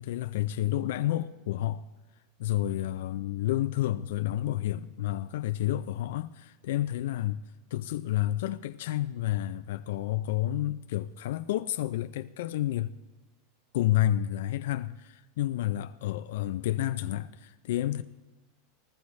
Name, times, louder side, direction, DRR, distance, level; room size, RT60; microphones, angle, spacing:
voice 1, 0.0-1.8 2.4-7.4 7.7-13.0 13.7-18.0, left 13 dB, 65° left, 0.4 m, -30 dB
19.5 x 13.0 x 3.2 m
supercardioid pair, 175°, 0 cm